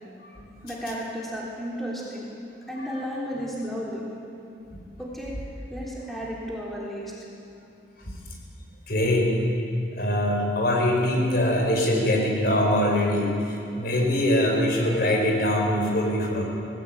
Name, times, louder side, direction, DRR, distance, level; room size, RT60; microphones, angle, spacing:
voice 1, 0.6-2.3 2.7-4.0 5.0-5.3 5.7-7.1, equal, ahead, -6 dB, 3.5 m, -33 dB
voice 2, 8.9-9.3 9.9-16.4, left 1 dB, 55° left, 0 dB, 4.6 m, -23 dB
20.0 x 15.5 x 8.6 m, 2.6 s
head